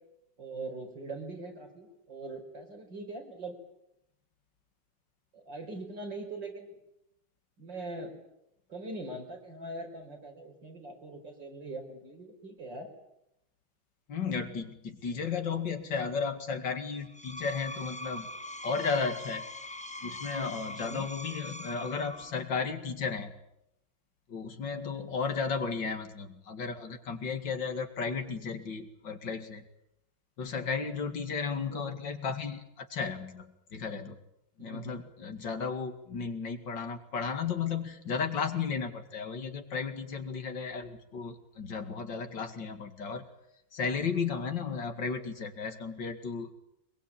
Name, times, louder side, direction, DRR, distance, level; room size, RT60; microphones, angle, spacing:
voice 1, 0.4-3.6 5.3-6.7 7.6-8.1 8.7-12.9 20.8-21.1 31.6-31.9 34.6-35.0, right 2 dB, 90° right, 3 dB, 5.6 m, -42 dB
voice 2, 14.1-18.3 18.6-19.5 20.0-23.3 24.3-29.7 30.4-33.5 33.7-34.2 34.6-43.3 43.7-46.5, left 5 dB, 85° left, 7 dB, 2.9 m, -34 dB
Screech, 17.0-22.5, left 1 dB, 5° left, 0.7 m, -42 dB
23.0 x 22.0 x 8.8 m, 0.81 s
omnidirectional pair, 1.9 m